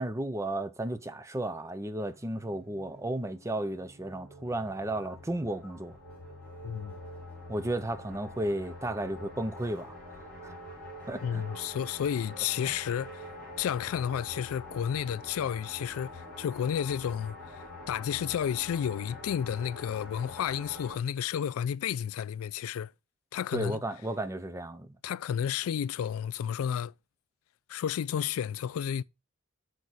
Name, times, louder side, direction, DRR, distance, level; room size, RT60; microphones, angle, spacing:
voice 1, 0.0-6.0 7.5-10.0 10.4-10.5 11.1-11.4 23.5-24.9, right 1 dB, 15° right, 0.4 m, -33 dB
sound 1, 2.0-20.9, left 1 dB, 5° left, 4.2 m, -46 dB
voice 2, 6.6-7.0 11.2-13.2 13.6-17.4 17.9-22.9 23.3-23.8 25.0-26.9 27.7-29.0, left 9 dB, 80° left, 0.3 m, -31 dB
6.3 x 4.6 x 4.0 m
head